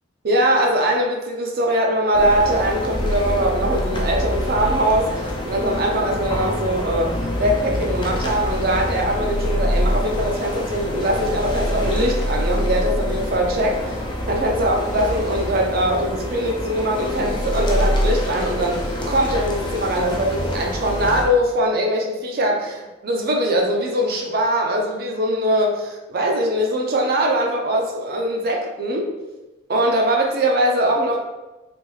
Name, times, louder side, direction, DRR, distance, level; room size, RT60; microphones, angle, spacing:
voice 1, 0.2-7.1 7.4-14.0 14.3-29.1 29.7-31.2, right 1 dB, 50° right, 1 dB, 0.5 m, -21 dB
sound 1, 2.1-21.3, equal, 25° left, 0.4 m, -25 dB
3.3 x 2.6 x 3.1 m, 1.1 s
head